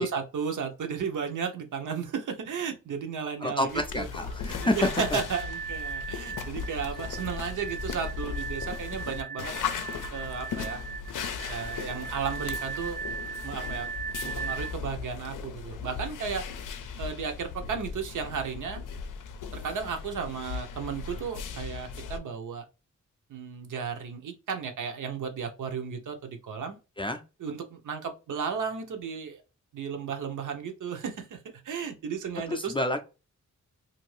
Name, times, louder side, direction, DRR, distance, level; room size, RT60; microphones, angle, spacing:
voice 1, 0.0-4.1 4.4-9.5 10.1-10.8 11.5-13.0 13.4-13.9 14.2-16.7 17.0-18.8 19.6-22.6 23.3-26.8 27.4-29.4 29.7-31.4 31.6-32.7, right 6 dB, 80° right, 0.8 m, -34 dB
voice 2, 3.4-5.2 27.0-27.2 32.5-33.0, left 1 dB, 15° left, 0.4 m, -28 dB
sound 1, 3.7-22.2, left 6 dB, 85° left, 0.5 m, -37 dB
sound 2, 4.5-14.7, right 6 dB, 35° right, 0.6 m, -38 dB
2.6 x 2.6 x 3.1 m
wide cardioid pair, 115°, 31 cm